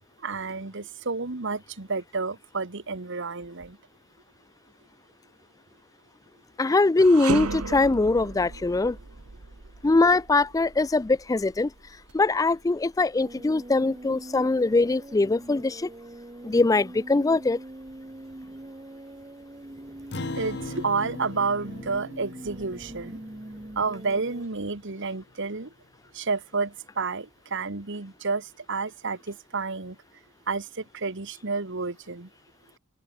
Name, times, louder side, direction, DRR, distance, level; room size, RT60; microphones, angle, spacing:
voice 1, 0.2-3.8 20.3-23.2 23.7-25.7 26.1-30.0 30.5-32.3, right 4 dB, 55° right, 1.5 m, -30 dB
voice 2, 6.6-9.0 9.8-11.7 12.1-15.9 16.4-17.6, left 3 dB, 15° left, 0.3 m, -22 dB
sound 1, 7.0-16.2 16.6-16.8 17.7-18.6, right 4 dB, 90° right, 1.2 m, -38 dB
sound 2, 13.2-24.5, right 1 dB, 20° right, 0.9 m, -43 dB
Acoustic guitar, 20.1-24.8, left 2 dB, 50° left, 1.3 m, -40 dB
open air
head